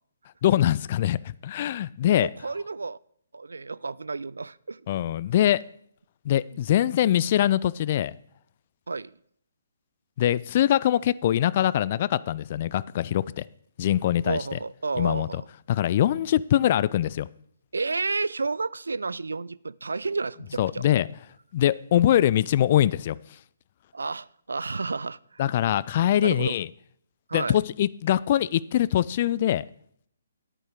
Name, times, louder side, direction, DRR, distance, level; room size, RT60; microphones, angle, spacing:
voice 1, 0.4-2.3 4.9-5.6 6.2-8.1 10.2-13.4 13.8-14.6 15.0-15.4 15.7-17.3 20.6-21.1 21.5-23.2 25.4-26.7 27.3-29.6, left 11 dB, 40° left, 0.3 m, -23 dB
voice 2, 2.0-3.0 3.3-4.8 6.5-6.6 8.9-9.1 14.2-15.5 17.7-20.8 21.9-22.0 23.9-25.5 26.2-26.6 27.3-27.6, right 3 dB, 70° right, 0.3 m, -31 dB
10.0 x 9.0 x 4.9 m
figure-of-eight pair, 135°, 0 cm